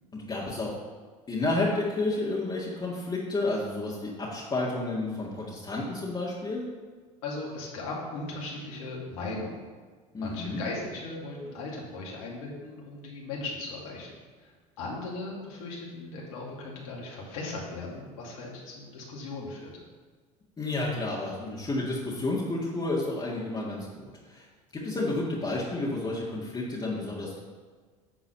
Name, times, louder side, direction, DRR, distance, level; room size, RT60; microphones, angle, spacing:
voice 1, 0.1-0.7 1.3-6.7 10.1-10.6 20.6-24.5 24.7-27.4, left 2 dB, 25° left, -6 dB, 1.9 m, -31 dB
voice 2, 7.2-9.5 10.2-14.1 14.4-19.7, left 3 dB, 75° left, -3 dB, 2.3 m, -38 dB
8.8 x 3.9 x 6.7 m, 1.5 s
hypercardioid pair, 75°, 18 cm